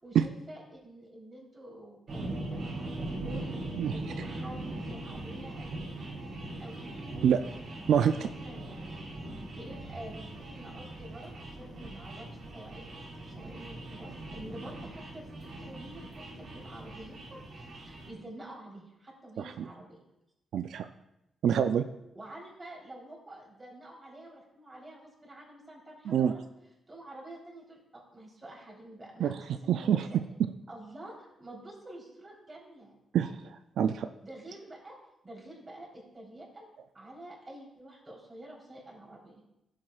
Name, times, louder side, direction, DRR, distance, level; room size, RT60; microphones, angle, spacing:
voice 1, 0.0-5.8 6.6-6.9 7.9-9.0 9.5-12.9 13.1-15.3 15.6-20.0 22.1-26.4 26.9-30.2 30.7-32.9 34.2-35.0 35.2-36.6 36.9-39.5, right 1 dB, 20° right, -3 dB, 3.5 m, -48 dB
sound 1, 2.1-18.1, right 2 dB, 60° right, 2.9 m, -40 dB
voice 2, 19.4-19.7 20.5-20.9 21.4-21.8 26.1-26.3 29.2-29.4 29.7-30.0 33.1-33.3 33.8-34.1, right 9 dB, 80° right, 8 dB, 0.3 m, -25 dB
15.0 x 7.6 x 2.4 m, 0.88 s
cardioid pair, 115°, 0 cm